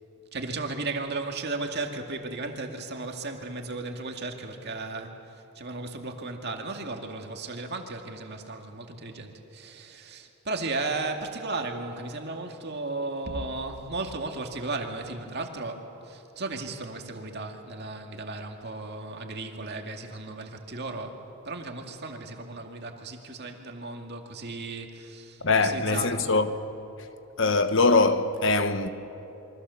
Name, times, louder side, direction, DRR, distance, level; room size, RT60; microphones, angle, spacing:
voice 1, 0.3-26.2, right 3 dB, 50° right, 2.2 m, -35 dB
voice 2, 25.4-26.5 27.4-28.9, left 3 dB, 55° left, 1.1 m, -22 dB
28.5 x 24.0 x 7.0 m
head